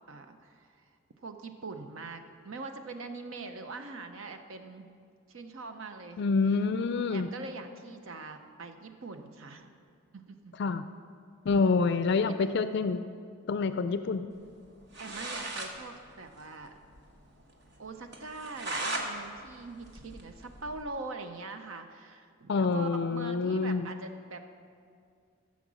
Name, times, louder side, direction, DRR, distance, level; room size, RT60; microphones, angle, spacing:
voice 1, 0.1-4.9 5.3-6.2 7.0-9.8 10.1-10.6 11.5-11.8 15.0-16.8 17.8-24.5, right 3 dB, 70° right, 7 dB, 0.7 m, -43 dB
voice 2, 6.2-7.3 10.6-10.8 11.5-13.0 13.5-14.3 22.5-23.9, left 4 dB, 55° left, 11 dB, 0.4 m, -27 dB
sound 1, 14.7-14.8 14.9-15.7 16.1-16.2 16.4-16.5 16.9-17.0 17.4-17.5 18.1-19.1 19.5-20.8, right 2 dB, 50° right, 1.3 m, -37 dB
14.0 x 7.3 x 6.1 m, 2.3 s
head